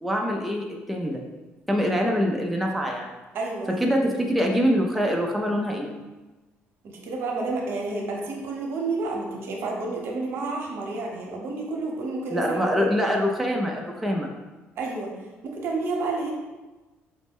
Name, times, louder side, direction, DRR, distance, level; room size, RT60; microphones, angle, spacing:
voice 1, 0.0-1.2 1.7-3.1 3.7-5.9 12.3-14.3, equal, ahead, -1 dB, 0.4 m, -24 dB
voice 2, 3.3-3.8 6.8-12.6 14.8-15.1 15.5-16.3, right 3 dB, 60° right, 0 dB, 0.8 m, -30 dB
4.9 x 2.1 x 3.5 m, 1.2 s
cardioid pair, 130°, 4 cm